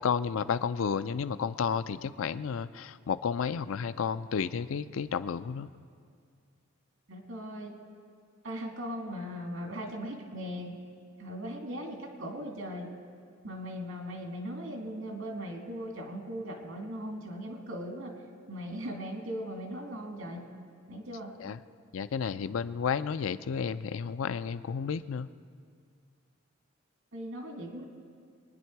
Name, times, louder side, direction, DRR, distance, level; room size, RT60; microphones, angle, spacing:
voice 1, 0.0-5.7 21.4-21.6 21.9-25.3, left 6 dB, 80° left, 14 dB, 0.4 m, -32 dB
voice 2, 7.1-7.8 8.4-10.8 11.2-12.9 13.4-18.1 18.5-20.5 20.9-21.3 27.1-27.8, equal, 85° right, 2 dB, 2.5 m, -39 dB
24.0 x 10.0 x 4.6 m, 2.1 s
head